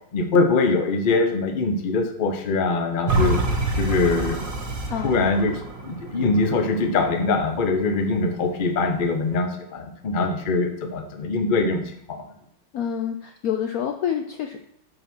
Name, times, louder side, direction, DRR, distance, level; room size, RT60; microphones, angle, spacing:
voice 1, 0.1-3.4 3.7-4.4 5.0-12.2, left 3 dB, 50° left, 5 dB, 0.6 m, -23 dB
sound 1, 3.1-8.1 8.6-8.7, right 2 dB, 30° right, 1.3 m, -27 dB
voice 2, 12.7-14.6, left 8 dB, 85° left, 4 dB, 0.7 m, -27 dB
8.0 x 5.0 x 6.0 m, 0.71 s
omnidirectional pair, 2.3 m